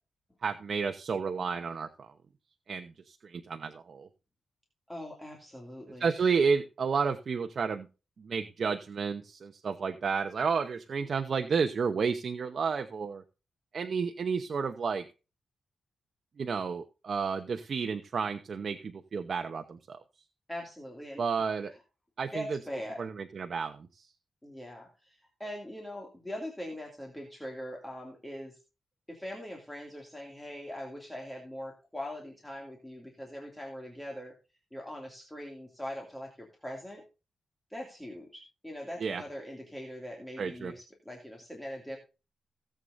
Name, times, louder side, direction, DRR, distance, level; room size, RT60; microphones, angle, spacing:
voice 1, 0.4-2.1 2.7-4.1 6.0-7.9 8.2-13.2 13.7-15.0 16.4-20.0 21.2-21.7 22.2-22.6 23.0-23.8 39.0-39.2 40.4-40.7, right 5 dB, 50° right, 7 dB, 0.9 m, -31 dB
voice 2, 4.9-6.3 20.5-21.2 21.6-21.8 22.3-23.0 24.4-28.6 29.1-34.3 34.7-37.0 37.7-42.0, equal, 5° left, -1 dB, 2.5 m, -42 dB
17.5 x 7.9 x 2.7 m, 0.31 s
wide cardioid pair, 160°, 0 cm